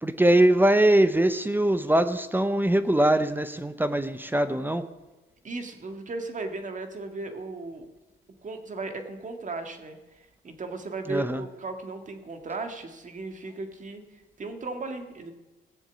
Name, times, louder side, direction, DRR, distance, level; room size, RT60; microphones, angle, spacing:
voice 1, 0.0-4.8 11.1-11.4, right 1 dB, 10° right, 10 dB, 0.8 m, -22 dB
voice 2, 5.4-7.9 8.4-15.3, right 3 dB, 40° right, 6 dB, 2.1 m, -36 dB
16.5 x 7.2 x 8.4 m, 1.1 s
cardioid pair, 90°, 20 cm